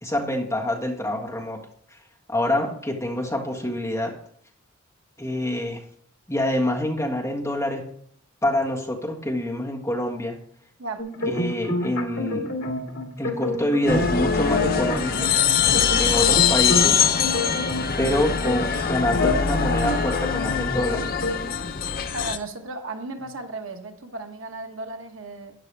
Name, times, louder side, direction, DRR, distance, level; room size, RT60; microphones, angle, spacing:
voice 1, 0.0-1.7 2.3-4.2 5.2-5.8 6.3-7.9 8.4-10.4 11.2-12.5 13.2-15.3 16.0-17.0 18.0-21.1, left 1 dB, 15° left, 0 dB, 1.6 m, -26 dB
sound 1, 11.0-21.4, left 2 dB, 70° left, 2.2 m, -28 dB
sound 2, 13.9-22.4, left 7 dB, 45° left, 0.7 m, -23 dB
voice 2, 22.1-25.5, right 2 dB, 70° right, 5 dB, 1.3 m, -35 dB
12.5 x 9.8 x 3.4 m, 0.65 s
head